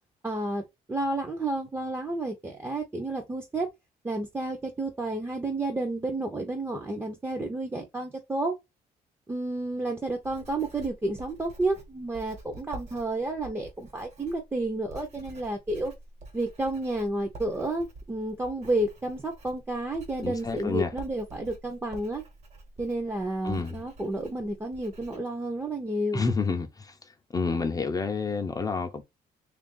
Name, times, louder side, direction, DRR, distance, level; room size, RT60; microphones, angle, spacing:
voice 1, 0.2-0.6 0.9-3.7 4.0-8.5 9.3-15.9 16.3-22.2 22.8-26.3, right 2 dB, 15° right, 0.6 m, -31 dB
Writing, 10.1-25.2, right 2 dB, 45° right, 1.2 m, -48 dB
voice 2, 20.2-20.9 23.4-23.7 26.1-26.9 27.3-29.0, left 4 dB, 20° left, 0.5 m, -29 dB
3.3 x 2.5 x 3.7 m
cardioid pair, 145°, 16 cm